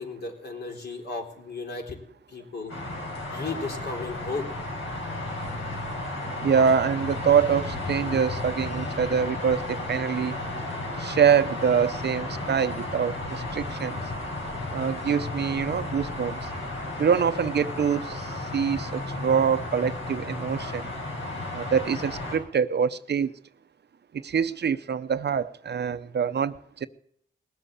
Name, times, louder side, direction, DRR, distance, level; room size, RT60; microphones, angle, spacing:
voice 1, 0.0-2.0 2.3-2.7 3.3-4.5, left 3 dB, 55° left, 3.8 m, -34 dB
sound 1, 2.7-22.4, left 2 dB, 90° left, 6.6 m, -33 dB
voice 2, 6.4-10.4 11.0-14.0 14.7-16.5 17.0-20.9 21.5-23.3 24.1-26.9, right 7 dB, 60° right, 0.8 m, -25 dB
19.5 x 7.8 x 8.2 m
cardioid pair, 75°, 20 cm